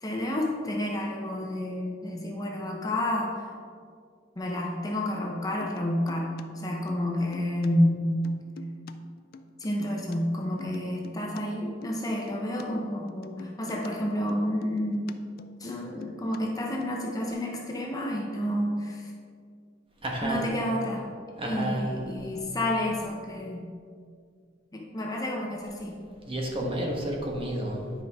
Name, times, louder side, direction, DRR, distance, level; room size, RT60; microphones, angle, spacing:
voice 1, 0.0-3.5 4.4-8.0 9.6-15.1 15.6-19.1 20.2-21.1 21.5-23.7 24.7-26.0, left 1 dB, 20° left, -1 dB, 0.8 m, -30 dB
sound 1, 5.6-6.4 6.7-7.7 7.9-10.2 10.4-12.6 12.9-16.4 16.7-17.3, left 4 dB, 55° left, 0.4 m, -47 dB
voice 2, 20.0-20.4 21.3-22.1 26.2-27.9, right 1 dB, 30° right, -1 dB, 1.2 m, -31 dB
9.9 x 5.2 x 3.6 m, 2.2 s
head